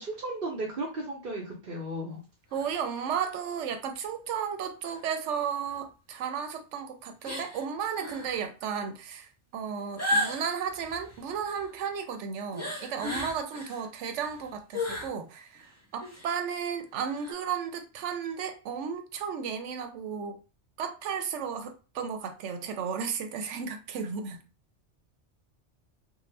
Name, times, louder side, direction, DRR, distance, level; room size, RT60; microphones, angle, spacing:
voice 1, 0.0-2.2, right 1 dB, 50° right, 0.9 m, -35 dB
sound 1, 2.5-2.7 3.2-3.3 4.9-5.0 5.7-5.8 7.2-7.6 7.9-8.4 10.0-11.7 12.5-13.9 14.2-15.1 15.6-15.7 16.0-16.3 17.1-17.3, left 1 dB, 15° left, 0.7 m, -34 dB
voice 2, 2.5-20.4 20.8-24.4, right 7 dB, 85° right, 0.9 m, -34 dB
2.7 x 2.2 x 3.2 m
omnidirectional pair, 1.2 m